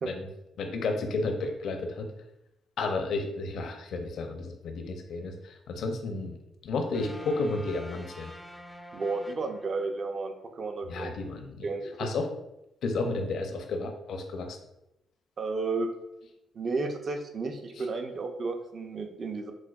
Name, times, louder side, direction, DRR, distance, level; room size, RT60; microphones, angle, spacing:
voice 1, 0.6-2.1 2.8-6.4 6.6-8.3 10.9-11.7 12.0-12.3 12.8-14.6 17.8-17.9, left 3 dB, 75° left, 4 dB, 0.5 m, -32 dB
sound 1, 6.9-10.2, left 1 dB, 5° left, 0.4 m, -47 dB
voice 2, 8.9-11.1 11.6-12.1 15.4-15.9 16.5-19.5, right 3 dB, 50° right, 5 dB, 0.5 m, -32 dB
6.1 x 2.2 x 2.4 m, 0.88 s
cardioid pair, 90°, 0 cm